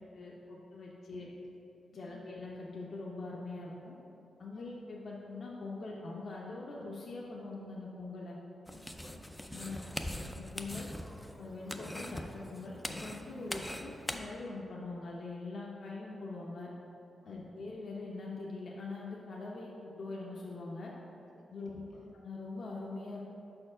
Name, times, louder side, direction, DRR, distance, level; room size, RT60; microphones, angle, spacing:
voice 1, 0.2-1.3 1.9-4.0 4.4-8.4 9.5-9.8 10.3-10.9 11.4-16.7 17.3-20.9 21.5-21.8 22.1-23.2, left 3 dB, 55° left, -4 dB, 0.6 m, -43 dB
voice 2, 1.0-1.5 2.0-2.2 4.5-4.8 8.6-9.3 13.3-13.5 17.2-17.4 20.9-22.1, left 1 dB, 80° left, -2 dB, 1.0 m, -59 dB
sound 1, 8.7-14.2, left 1 dB, 5° left, 0.3 m, -42 dB
5.8 x 4.4 x 4.9 m, 2.8 s
wide cardioid pair, 135°, 0 cm